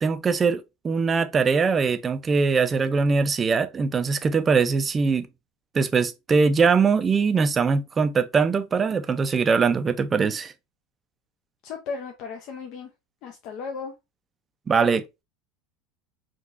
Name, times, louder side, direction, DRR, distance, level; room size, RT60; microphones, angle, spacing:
voice 1, 0.0-5.3 5.7-10.5 14.7-15.2, right 5 dB, 25° right, 0.4 m, -22 dB
voice 2, 11.6-12.9 13.2-13.9, left 5 dB, 55° left, 0.5 m, -35 dB
3.7 x 2.4 x 2.4 m
hypercardioid pair, 95°, 0 cm